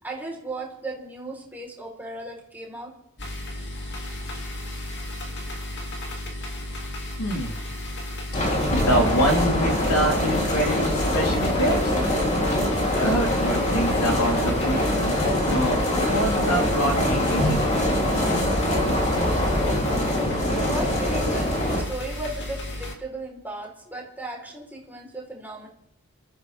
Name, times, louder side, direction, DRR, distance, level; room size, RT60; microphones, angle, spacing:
voice 1, 0.0-2.9 20.0-25.7, right 2 dB, 10° right, -2 dB, 4.2 m, -36 dB
sound 1, 3.2-22.9, left 1 dB, 55° left, 2.4 m, -34 dB
voice 2, 7.2-7.6 8.7-12.0 12.9-17.7, equal, 90° left, 0 dB, 3.7 m, -26 dB
sound 2, 8.3-21.8, left 1 dB, 30° left, 3.4 m, -23 dB
28.0 x 14.0 x 3.6 m, 0.81 s
head